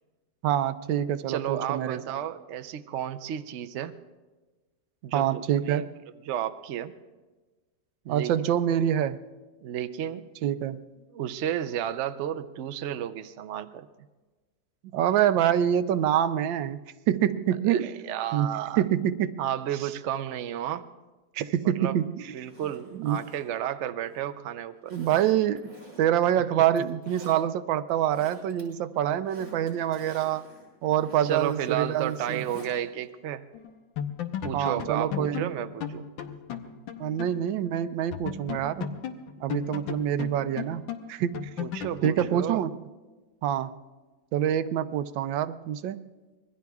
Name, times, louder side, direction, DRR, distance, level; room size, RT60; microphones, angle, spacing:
voice 1, 0.4-2.0 5.1-5.9 8.1-9.2 10.4-10.8 14.9-16.8 17.1-18.0 18.3-18.5 18.8-19.3 21.3-22.3 22.9-23.2 24.9-25.6 26.0-30.4 30.8-32.4 34.5-35.5 37.0-38.9 39.4-40.8 41.1-41.5 42.0-42.8 43.4-43.8 44.3-46.0, right 10 dB, 90° right, 12 dB, 1.4 m, -26 dB
voice 2, 1.3-4.0 5.0-5.8 6.3-6.9 8.0-8.3 9.6-10.3 11.1-13.9 17.6-18.8 19.4-20.8 21.6-22.0 22.3-24.9 26.5-26.6 31.2-33.4 34.4-36.1 41.6-42.6, right 10 dB, 70° right, 10 dB, 0.6 m, -32 dB
Zipper (clothing), 22.4-24.3 24.9-26.3 26.6-27.4 27.9-28.6 28.9-32.7 33.0-33.1, right 1 dB, 55° right, 5.9 m, -49 dB
sound 1, 33.5-33.7 34.0-37.4 37.7-37.8 38.1-42.4, left 8 dB, 90° left, 1.6 m, -35 dB
26.5 x 21.0 x 2.4 m, 1.3 s
omnidirectional pair, 2.0 m